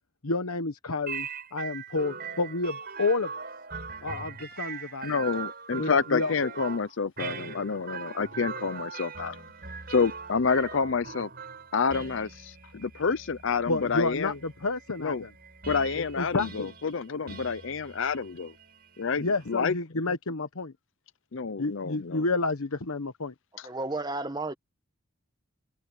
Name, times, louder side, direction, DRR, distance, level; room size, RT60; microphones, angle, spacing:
voice 1, 0.2-3.3 4.0-5.1 5.8-6.3 13.7-15.3 16.0-16.7 17.2-17.3 19.2-20.7 21.6-23.3, left 3 dB, 80° left, 1.2 m, -30 dB
sound 1, 1.1-19.7, right 5 dB, 45° right, 6.6 m, -41 dB
voice 2, 5.0-9.4 9.9-11.3 11.7-14.4 15.0-15.2 15.7-18.5 19.0-19.7 21.3-22.2 23.6-23.7, left 5 dB, 60° left, 0.6 m, -28 dB
voice 3, 23.6-24.5, right 2 dB, 20° right, 1.5 m, -32 dB
head